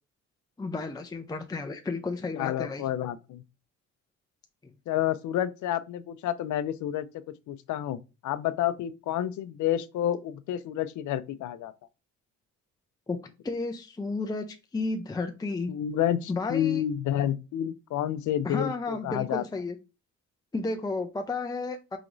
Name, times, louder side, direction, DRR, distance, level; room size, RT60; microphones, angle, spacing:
voice 1, 0.6-2.8 13.1-13.2 13.4-14.5 14.7-15.7 16.3-16.8 18.4-19.8 20.5-22.0, left 3 dB, 15° left, 0.5 m, -32 dB
voice 2, 2.3-3.4 4.9-7.1 7.5-11.7 15.7-19.4, left 11 dB, 75° left, 0.5 m, -29 dB
5.0 x 2.9 x 2.6 m
cardioid pair, 90°, 30 cm